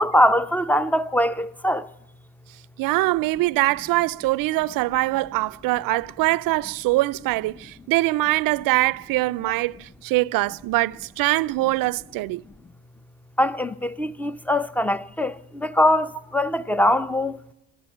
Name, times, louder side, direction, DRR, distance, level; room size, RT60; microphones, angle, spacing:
voice 1, 0.0-1.9 13.4-17.4, left 1 dB, 5° left, 0.5 m, -22 dB
voice 2, 2.8-12.4, right 19 dB, 55° right, 0.5 m, -23 dB
13.5 x 12.0 x 7.2 m
supercardioid pair, 80°, 40 cm